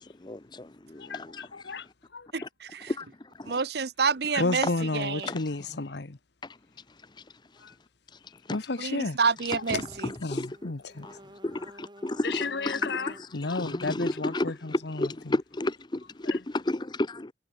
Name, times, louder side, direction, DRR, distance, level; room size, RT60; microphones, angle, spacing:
voice 1, 0.0-1.9 2.4-2.5 2.9-3.6 5.2-5.4 6.4-6.6 6.9-7.7 8.1-8.6 9.5-10.7 11.0-13.0 13.4-17.3, left 2 dB, 25° left, 0.6 m, -33 dB
voice 2, 1.0-1.9 2.1-2.3 4.3-6.2 7.6-7.7 8.5-9.2 10.2-11.1 12.2-15.1 16.2-16.4, left 3 dB, 60° left, 1.0 m, -32 dB
voice 3, 2.3-2.9 3.5-4.7 4.9-5.3 8.8-10.1, right 5 dB, 55° right, 0.8 m, -28 dB
sound 1, 9.5-10.2 10.5-13.4, right 1 dB, 25° right, 5.6 m, -50 dB
head